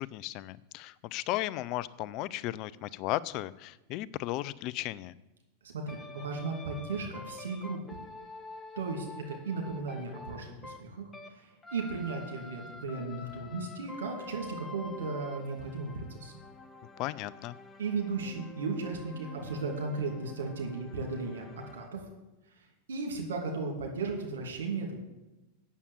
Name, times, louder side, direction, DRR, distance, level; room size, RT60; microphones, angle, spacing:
voice 1, 0.0-5.1 17.0-17.6, left 16 dB, 45° left, 17 dB, 0.4 m, -35 dB
voice 2, 5.7-7.8 8.8-16.4 17.8-21.4 21.7-22.0 22.6-25.0, right 4 dB, 70° right, 1 dB, 2.7 m, -36 dB
sound 1, 5.9-11.4 11.6-21.9, left 3 dB, 20° left, 1.1 m, -48 dB
8.3 x 7.1 x 8.4 m, 1.0 s
figure-of-eight pair, 90°, 0 cm